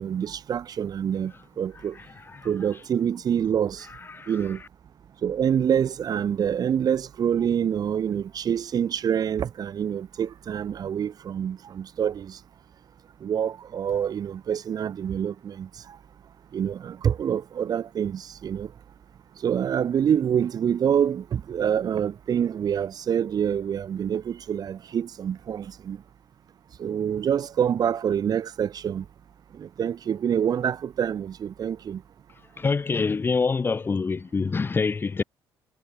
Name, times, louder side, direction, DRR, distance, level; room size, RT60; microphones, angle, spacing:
voice 1, 0.0-2.0 2.4-3.9 4.3-4.6 5.2-12.4 13.2-16.0 16.5-18.7 19.4-26.0 26.8-29.0 29.6-32.0, right 8 dB, 50° right, 6.5 m, -26 dB
voice 2, 32.6-35.2, left 4 dB, 25° left, 1.5 m, -25 dB
cardioid pair, 100°, 8 cm